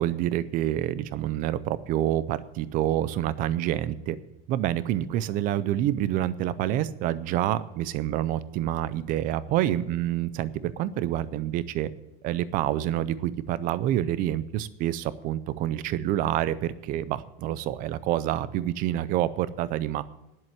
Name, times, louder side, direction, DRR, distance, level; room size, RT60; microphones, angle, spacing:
voice 1, 0.0-4.2 4.5-11.9 12.2-20.0, right 12 dB, 30° right, 17 dB, 0.4 m, -27 dB
10.5 x 7.6 x 9.2 m, 0.91 s
supercardioid pair, 170°, 30 cm